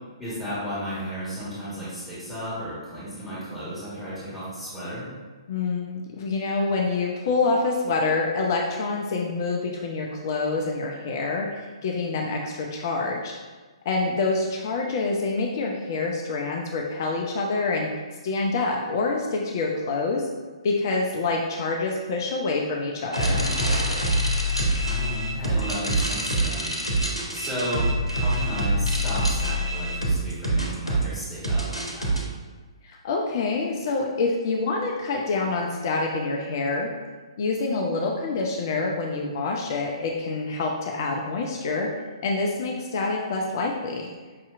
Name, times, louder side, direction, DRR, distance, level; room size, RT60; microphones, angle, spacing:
voice 1, 0.2-5.1 24.8-26.7 27.3-32.2, equal, 5° left, -12 dB, 1.4 m, -34 dB
voice 2, 5.5-13.3 13.9-17.9 18.2-20.3 20.6-23.4 32.8-36.9 37.4-41.9 42.2-44.1, left 3 dB, 40° left, 0 dB, 0.4 m, -26 dB
sound 1, 23.1-32.2, right 1 dB, 90° left, 0.8 m, -25 dB
5.6 x 2.7 x 2.4 m, 1.4 s
figure-of-eight pair, 120°, 3 cm